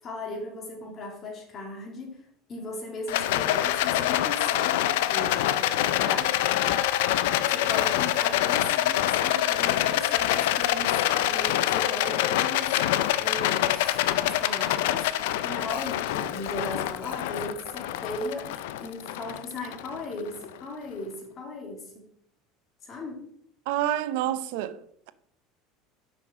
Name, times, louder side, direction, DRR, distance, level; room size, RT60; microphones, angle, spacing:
voice 1, 0.0-6.4 7.5-12.9 13.2-22.1 22.8-23.3, left 2 dB, 40° left, 2.6 m, -37 dB
Rattle, 3.1-20.4, left 13 dB, 80° left, 0.4 m, -25 dB
voice 2, 23.7-25.1, right 12 dB, 75° right, 0.6 m, -29 dB
5.9 x 5.6 x 5.0 m
supercardioid pair, 105°, 0 cm